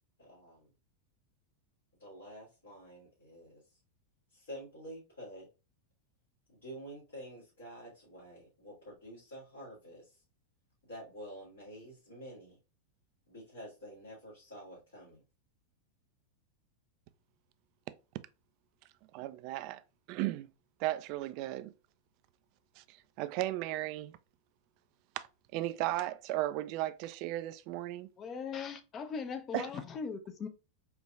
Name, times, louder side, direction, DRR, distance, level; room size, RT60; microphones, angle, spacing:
voice 1, 0.2-0.7 2.0-3.8 4.3-5.5 6.5-10.2 10.8-12.6 13.3-15.2, equal, 70° left, 2.1 m, -49 dB
voice 2, 19.1-19.8 20.1-20.5 20.8-21.7 22.8-24.2 25.2-25.3 25.5-28.1 29.5-29.7, right 15 dB, 45° right, 0.3 m, -35 dB
voice 3, 28.2-30.5, left 5 dB, 25° left, 0.6 m, -39 dB
4.5 x 3.0 x 2.3 m
figure-of-eight pair, 90°, 0 cm